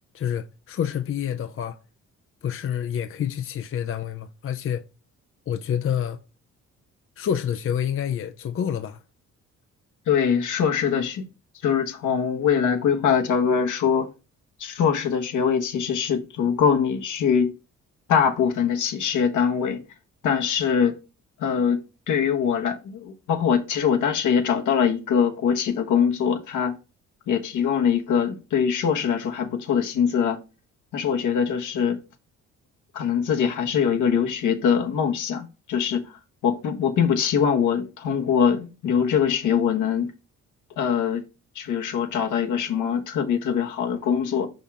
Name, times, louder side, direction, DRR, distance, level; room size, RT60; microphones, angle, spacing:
voice 1, 0.1-1.8 2.4-4.8 5.5-6.2 7.2-9.0, left 9 dB, 45° left, 0.6 m, -28 dB
voice 2, 10.1-11.2 11.6-14.1 14.6-17.5 18.1-19.8 20.2-21.0 21.4-21.8 22.1-26.7 27.3-30.4 30.9-32.0 32.9-36.1 36.4-40.1 40.8-41.2 41.5-44.5, left 7 dB, 75° left, 1.4 m, -23 dB
5.7 x 5.5 x 3.6 m
cardioid pair, 90°, 30 cm